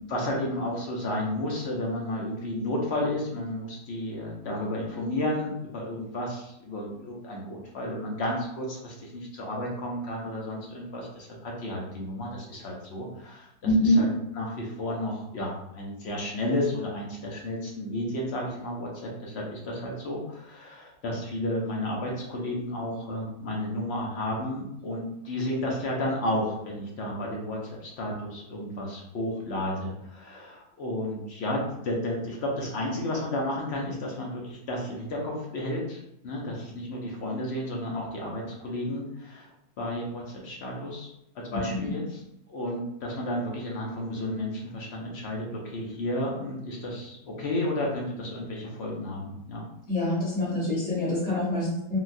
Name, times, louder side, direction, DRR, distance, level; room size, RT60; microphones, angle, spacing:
voice 1, 0.1-13.5 13.8-14.1 14.4-18.9 19.2-39.5 39.8-41.1 41.5-42.2 42.5-49.6, left 1 dB, 65° left, -2 dB, 0.6 m, -32 dB
voice 2, 13.6-14.0 41.5-41.9 49.9-52.0, left 1 dB, 45° left, -8 dB, 1.5 m, -25 dB
3.8 x 2.2 x 2.5 m, 0.81 s
omnidirectional pair, 1.7 m